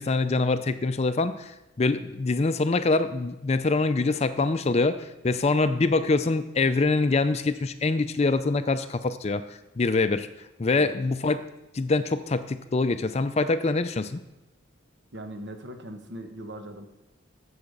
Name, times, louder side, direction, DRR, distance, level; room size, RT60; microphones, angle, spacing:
voice 1, 0.0-9.4 9.8-10.3 10.6-11.4 11.7-14.2, left 3 dB, 30° left, 11 dB, 0.4 m, -24 dB
voice 2, 15.1-16.9, right 1 dB, 60° right, 6 dB, 1.2 m, -40 dB
8.5 x 7.2 x 6.6 m, 0.99 s
head